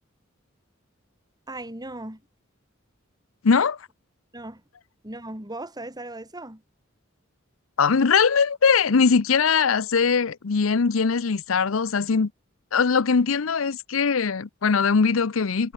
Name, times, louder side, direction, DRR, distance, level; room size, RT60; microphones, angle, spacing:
voice 1, 1.5-2.2 4.3-4.6 5.0-6.6, right 1 dB, 20° right, 5.5 m, -37 dB
voice 2, 3.4-3.8 7.8-12.3 12.7-15.7, left 5 dB, 80° left, 0.7 m, -21 dB
head